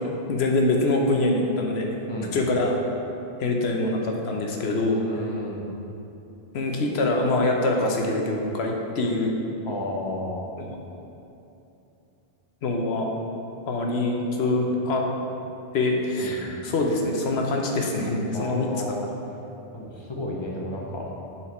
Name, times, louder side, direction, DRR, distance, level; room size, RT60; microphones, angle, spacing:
voice 1, 0.3-1.9 2.3-2.8 3.4-5.0 6.5-9.4 12.6-13.1 13.7-15.0 15.7-18.7, left 2 dB, 90° left, 1 dB, 1.1 m, -24 dB
voice 2, 4.9-5.7 9.6-10.4 14.5-14.7 16.2-16.6 18.3-19.1 19.7-21.1, left 1 dB, 30° left, -3 dB, 0.8 m, -33 dB
7.3 x 4.4 x 4.3 m, 2.9 s
omnidirectional pair, 1.0 m